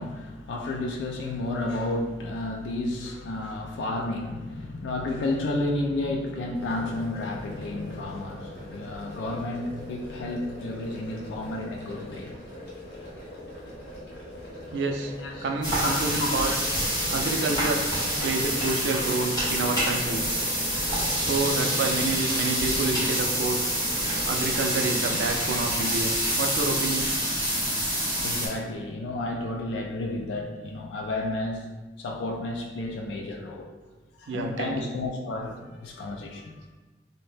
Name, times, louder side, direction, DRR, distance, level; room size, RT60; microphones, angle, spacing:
voice 1, 0.0-12.3 15.2-15.5 15.8-16.6 28.2-31.7 32.0-33.7 34.2-36.5, left 2 dB, 80° left, 2 dB, 0.3 m, -31 dB
sound 1, 6.5-24.8, left 1 dB, 65° left, 0.8 m, -42 dB
voice 2, 14.7-15.1 15.4-16.5 17.1-17.9 18.2-20.2 21.2-23.6 24.2-27.1 34.3-34.8, right 3 dB, 80° right, 3 dB, 0.4 m, -28 dB
sound 2, 15.6-28.5, equal, 20° left, 1.1 m, -27 dB
2.6 x 2.1 x 3.3 m, 1.2 s
head